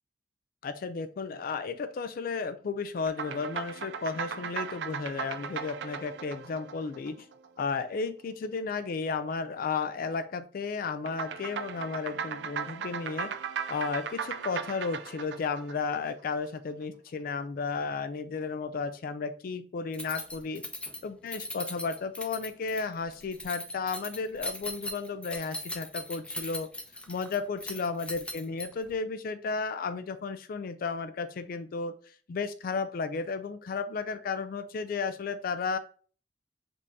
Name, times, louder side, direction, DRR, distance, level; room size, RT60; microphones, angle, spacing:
voice 1, 0.6-7.3 7.6-13.3 13.7-20.6 21.0-26.7 27.1-31.9 32.3-35.8, left 4 dB, 55° left, 11 dB, 0.4 m, -33 dB
sound 1, 3.1-7.7 11.1-16.5, right 7 dB, 70° right, 0.4 m, -37 dB
Keys jangling, 19.9-28.9, left 1 dB, 5° left, 0.6 m, -39 dB
5.2 x 2.7 x 3.4 m, 0.41 s
head